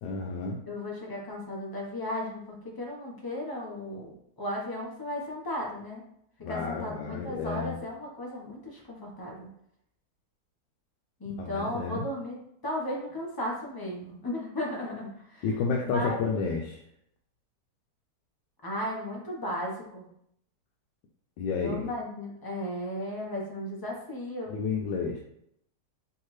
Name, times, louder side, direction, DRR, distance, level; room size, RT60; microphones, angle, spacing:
voice 1, 0.0-0.6 6.4-7.8 11.4-12.0 15.4-16.8 21.4-21.9 24.5-25.2, left 5 dB, 80° left, 0 dB, 1.2 m, -31 dB
voice 2, 0.7-6.0 6.4-9.5 11.2-15.5 15.8-16.4 18.6-20.1 21.6-24.6, left 1 dB, 20° left, -2 dB, 0.6 m, -35 dB
4.6 x 3.2 x 3.1 m, 0.74 s
omnidirectional pair, 1.9 m